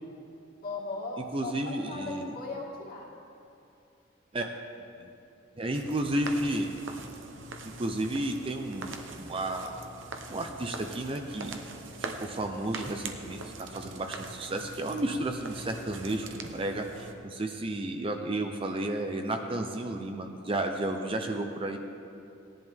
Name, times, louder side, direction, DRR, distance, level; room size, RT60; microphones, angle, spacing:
voice 1, 0.6-3.1, left 3 dB, 45° left, -4 dB, 2.2 m, -38 dB
voice 2, 1.3-2.4 4.3-4.5 5.0-5.1 5.6-6.7 7.6-9.7 10.3-11.6 12.0-21.8, right 1 dB, 25° right, 4 dB, 0.6 m, -32 dB
sound 1, 5.7-17.1, right 3 dB, 75° right, 0.9 m, -42 dB
17.5 x 11.0 x 3.6 m, 2.6 s
head